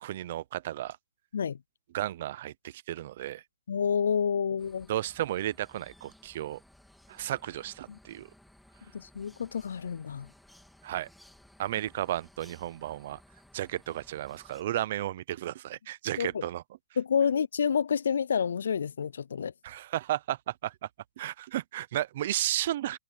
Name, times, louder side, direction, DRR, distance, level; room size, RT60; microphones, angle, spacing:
voice 1, 0.0-1.0 1.9-3.4 4.9-6.6 7.1-8.3 10.8-11.1 11.6-13.2 13.5-16.6 19.6-20.7 21.2-23.0, right 13 dB, 35° right, 0.5 m, -33 dB
voice 2, 3.7-4.9 7.9-8.0 8.9-10.3 16.2-16.4 17.0-19.5, left 7 dB, 65° left, 0.4 m, -29 dB
sound 1, 4.6-14.6, left 1 dB, ahead, 3.1 m, -58 dB
hypercardioid pair, 175°, 0 cm